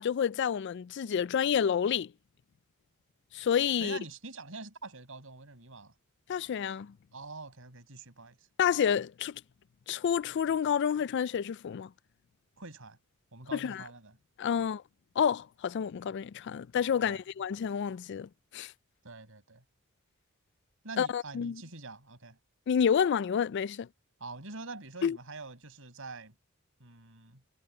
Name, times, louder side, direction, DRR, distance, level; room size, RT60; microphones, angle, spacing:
voice 1, 0.0-2.1 3.3-4.0 6.3-6.9 8.6-9.4 9.9-11.9 13.5-13.8 14.4-14.8 15.2-18.7 21.0-21.6 22.7-23.9 25.0-25.2, left 7 dB, 55° left, 0.3 m, -29 dB
voice 2, 3.8-5.9 7.1-8.5 12.6-13.0 13.3-14.2 14.6-14.7 17.0-17.2 19.0-19.6 20.8-22.4 24.2-26.3 26.8-27.4, right 3 dB, 70° right, 6.0 m, -45 dB
head